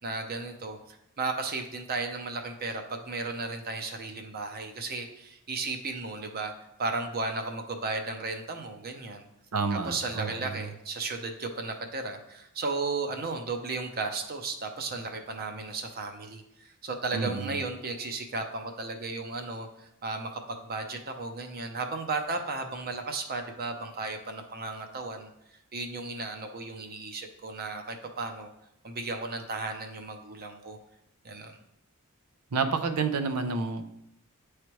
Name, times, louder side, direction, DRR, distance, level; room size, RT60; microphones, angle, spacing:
voice 1, 0.0-6.5 6.8-9.3 9.9-25.3 25.7-28.5 28.8-30.8 31.2-31.6, right 3 dB, 45° right, 5 dB, 0.7 m, -35 dB
voice 2, 9.5-10.5 17.1-17.6 32.5-33.9, right 4 dB, 85° right, 8 dB, 0.6 m, -29 dB
9.5 x 3.2 x 3.0 m, 0.81 s
head